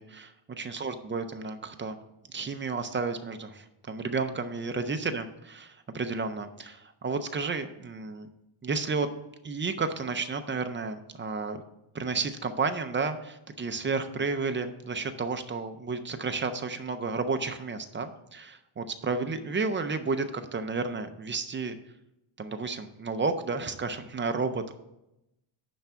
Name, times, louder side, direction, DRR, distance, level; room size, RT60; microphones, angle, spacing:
voice 1, 0.0-0.3 0.6-2.0 2.3-8.3 8.6-9.1 9.4-11.6 11.9-21.8 22.4-24.7, right 4 dB, 25° right, 8 dB, 0.4 m, -32 dB
10.0 x 3.5 x 6.6 m, 0.89 s
wide cardioid pair, 170°, 50 cm